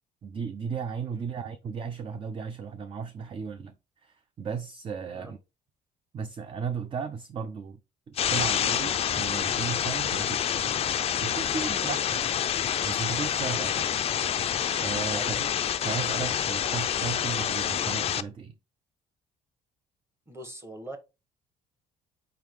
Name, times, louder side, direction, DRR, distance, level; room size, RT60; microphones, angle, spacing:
voice 1, 0.2-3.7 4.0-5.4 6.1-7.8 8.1-10.7 11.2-13.9 14.8-15.5 15.8-18.5, right 6 dB, 30° right, 0.4 m, -35 dB
sound 1, 8.2-18.2, left 9 dB, 35° left, 0.3 m, -27 dB
voice 2, 20.3-21.0, right 1 dB, 15° right, 1.2 m, -41 dB
4.5 x 3.6 x 3.1 m
cardioid pair, 110°, 17 cm